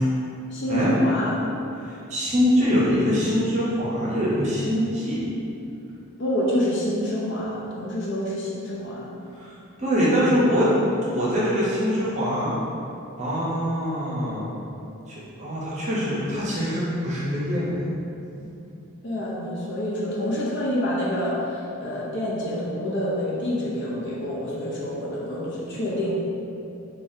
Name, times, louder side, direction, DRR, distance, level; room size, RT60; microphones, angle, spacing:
voice 1, 0.5-1.4 6.2-9.1 19.0-26.1, left 1 dB, 55° left, -6 dB, 0.7 m, -27 dB
voice 2, 2.1-5.2 9.4-9.5 9.8-10.7 11.0-12.5 13.2-14.5 15.1-17.9 18.4-18.5, equal, 30° right, -7 dB, 0.7 m, -23 dB
5.3 x 2.3 x 2.7 m, 2.8 s
head